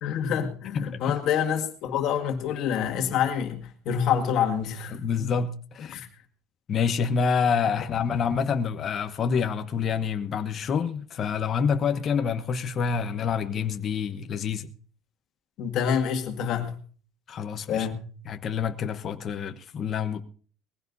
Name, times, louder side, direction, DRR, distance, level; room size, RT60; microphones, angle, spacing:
voice 1, 0.0-5.3 5.9-6.1 15.6-16.8 17.7-18.0, left 8 dB, 50° left, 2.0 m, -27 dB
voice 2, 0.7-1.1 4.9-6.0 6.7-14.7 17.3-17.9 18.3-20.2, left 6 dB, 30° left, 1.0 m, -27 dB
20.0 x 15.5 x 2.7 m
cardioid pair, 155°, 0 cm